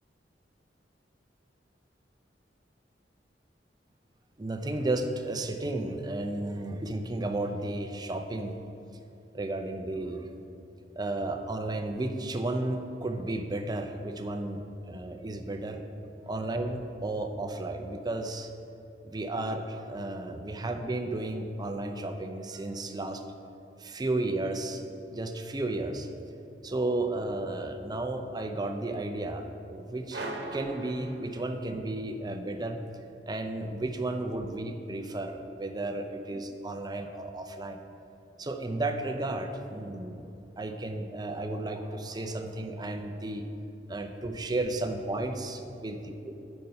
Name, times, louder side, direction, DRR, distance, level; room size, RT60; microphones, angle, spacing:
voice 1, 4.4-8.6 9.3-10.3 11.0-14.6 14.9-15.8 16.3-18.5 19.0-23.2 23.8-24.8 25.1-26.1 26.6-30.2 30.5-32.8 33.3-37.8 38.4-40.3 40.6-43.5 43.9-46.0 46.2-46.3, right 2 dB, 25° right, 6 dB, 0.6 m, -33 dB
sound 1, 30.1-31.9, right 1 dB, 65° right, 1.1 m, -39 dB
9.5 x 5.3 x 5.6 m, 2.7 s
head